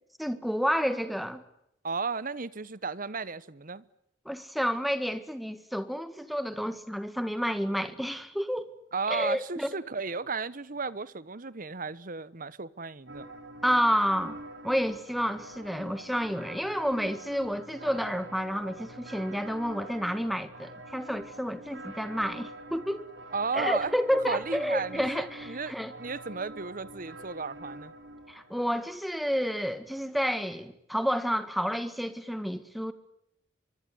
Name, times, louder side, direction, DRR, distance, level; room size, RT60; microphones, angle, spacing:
voice 1, 0.2-1.4 4.3-8.7 9.1-9.7 13.6-14.4 14.6-23.1 23.5-25.9 28.3-32.9, equal, ahead, 1.9 m, -30 dB
voice 2, 1.8-3.8 8.9-13.3 23.3-23.9 24.3-27.9, right 4 dB, 45° right, 1.1 m, -34 dB
sound 1, 13.1-29.0, right 1 dB, 70° right, 5.7 m, -45 dB
25.0 x 24.0 x 9.6 m
head